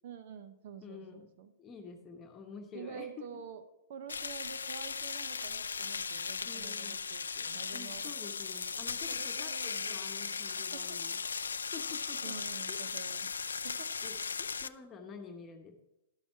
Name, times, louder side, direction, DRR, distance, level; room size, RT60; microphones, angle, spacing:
voice 1, 0.0-1.5 2.7-3.6 3.9-8.1 9.1-11.0 12.2-13.3 13.6-13.9, right 7 dB, 55° right, 10 dB, 0.8 m, -48 dB
voice 2, 0.8-1.3 1.6-3.1 6.4-7.0 7.7-11.2 11.5-12.4 12.7-12.8 14.0-15.8, left 5 dB, 25° left, 3 dB, 1.1 m, -49 dB
sound 1, 4.1-14.7, left 5 dB, 80° left, 0.3 m, -37 dB
11.5 x 7.2 x 4.6 m, 0.94 s
figure-of-eight pair, 110°, 0 cm